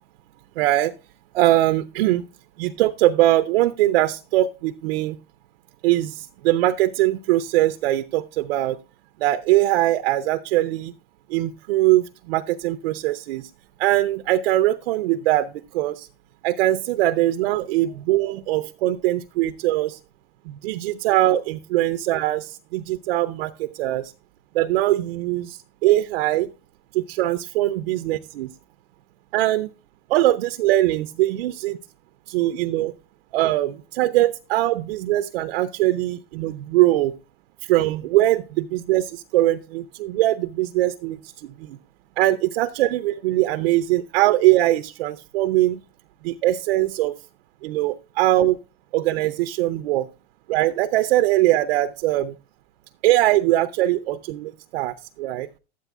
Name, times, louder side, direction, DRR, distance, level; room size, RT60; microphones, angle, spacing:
voice 1, 0.6-0.9 1.3-2.2 2.6-5.2 5.8-8.8 9.2-10.9 11.3-13.5 13.8-16.1 16.4-20.0 20.5-24.1 24.5-26.5 26.9-28.5 29.3-29.7 30.1-31.8 32.3-32.9 33.3-37.1 37.6-41.8 42.2-45.8 46.2-47.1 47.6-48.6 48.9-50.1 50.5-52.3 53.0-55.5, right 15 dB, 80° right, 9 dB, 0.7 m, -21 dB
12.5 x 9.3 x 2.3 m, 0.30 s
supercardioid pair, 130°, 30 cm